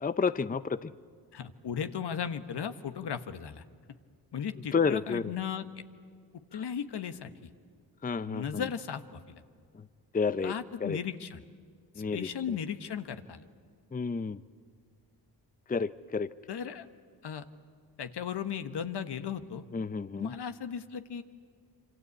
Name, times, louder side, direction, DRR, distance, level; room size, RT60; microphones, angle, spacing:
voice 1, 0.0-0.9 4.7-5.2 6.5-6.6 8.0-8.7 10.1-10.5 10.8-11.0 12.0-12.6 13.9-14.4 15.7-16.3 19.7-20.3, left 5 dB, 20° left, 15 dB, 0.6 m, -30 dB
voice 2, 1.3-3.6 4.3-5.7 6.5-7.3 8.2-9.4 10.4-11.4 12.1-13.4 16.5-16.9 17.2-17.4 18.0-19.6 20.2-21.2, left 8 dB, 70° left, 9 dB, 1.4 m, -36 dB
26.5 x 24.5 x 8.5 m, 2.1 s
cardioid pair, 55°, 43 cm